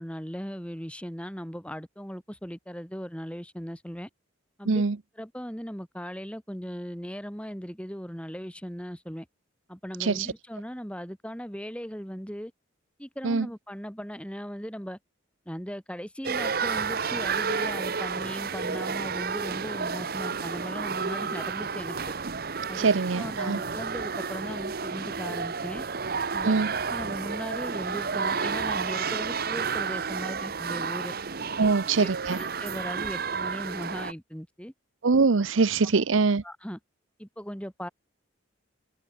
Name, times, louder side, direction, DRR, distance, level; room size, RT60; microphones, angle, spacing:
voice 1, 0.0-4.1 4.6-4.9 5.2-9.3 9.7-12.5 13.0-15.0 15.5-22.1 22.7-22.9 23.1-25.8 26.3-26.5 26.9-31.2 31.6-31.7 32.0-34.7 36.4-36.8 37.2-37.9, equal, 5° left, 6.1 m, -38 dB
voice 2, 4.7-5.0 10.0-10.3 13.2-13.5 22.8-23.6 26.4-26.7 31.6-32.4 35.0-36.4, right 4 dB, 75° right, 0.7 m, -23 dB
sound 1, 16.2-34.1, right 5 dB, 50° right, 0.9 m, -31 dB
head